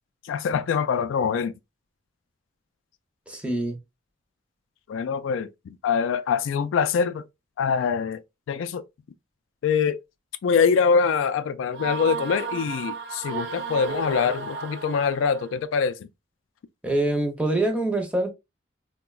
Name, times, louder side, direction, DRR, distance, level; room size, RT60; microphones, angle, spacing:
voice 1, 0.2-1.5 4.9-7.2 7.6-8.2 8.5-8.8 9.6-10.0 10.4-16.1, left 6 dB, 80° left, 0.3 m, -24 dB
voice 2, 3.3-3.8 16.8-18.3, right 1 dB, 5° right, 0.5 m, -25 dB
sound 1, 11.7-15.5, right 4 dB, 70° right, 0.6 m, -33 dB
3.7 x 2.1 x 2.3 m
head